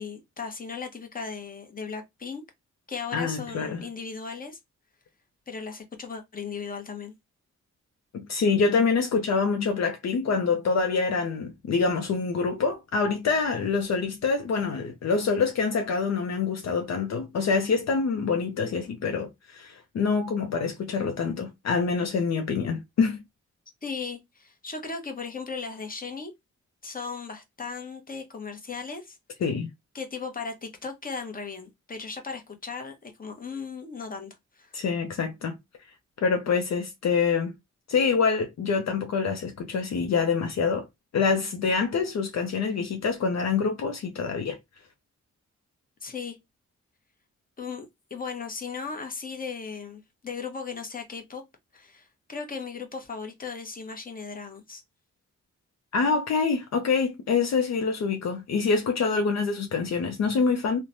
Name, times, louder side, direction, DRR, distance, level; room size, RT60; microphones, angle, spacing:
voice 1, 0.0-2.4 2.9-4.6 5.5-7.1 23.8-26.3 26.8-29.2 29.9-34.7 46.0-46.4 47.6-51.4 51.7-54.8, left 5 dB, 30° left, 0.9 m, -37 dB
voice 2, 3.1-3.8 8.1-23.2 29.4-29.7 34.7-35.5 36.2-37.5 37.9-40.8 41.1-44.6 55.9-60.8, left 5 dB, 65° left, 0.5 m, -26 dB
3.1 x 2.1 x 2.6 m
cardioid pair, 70°, 29 cm